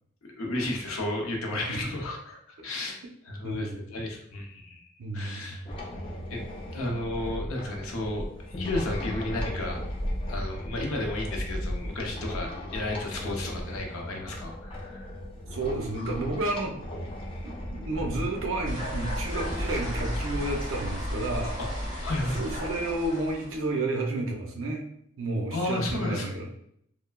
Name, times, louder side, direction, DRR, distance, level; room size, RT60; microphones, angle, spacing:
voice 1, 0.4-3.0 3.2-5.6 6.3-6.4 6.7-9.8 10.3-15.2 21.6-21.7 22.0-22.5 25.5-26.4, left 1 dB, 75° left, 1 dB, 0.6 m, -33 dB
voice 2, 1.5-1.9 3.4-3.8 5.0-5.6 15.5-16.7 17.4-21.6 22.4-24.9 25.2-26.5, right 2 dB, 65° right, 1 dB, 0.6 m, -31 dB
sound 1, 5.7-20.8, left 1 dB, 25° left, 0.3 m, -36 dB
sound 2, 18.6-23.7, equal, 30° right, 1.4 m, -34 dB
3.1 x 2.1 x 2.2 m, 0.70 s
head